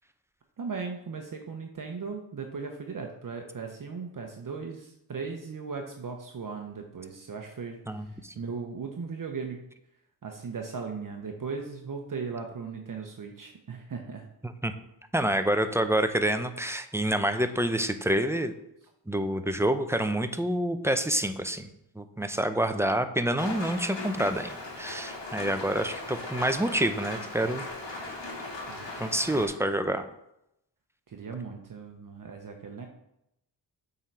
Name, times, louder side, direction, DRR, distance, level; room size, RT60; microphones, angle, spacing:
voice 1, 0.6-9.6 10.2-14.3 28.7-29.4 31.1-32.9, right 5 dB, 50° right, 3 dB, 0.9 m, -38 dB
voice 2, 7.9-8.3 14.4-14.7 15.1-18.5 19.1-27.6 29.0-30.0, right 1 dB, 5° right, 8 dB, 0.5 m, -27 dB
Rain, 23.4-29.5, left 2 dB, 85° left, 1.8 m, -38 dB
7.2 x 3.9 x 4.6 m, 0.82 s
cardioid pair, 75°, 43 cm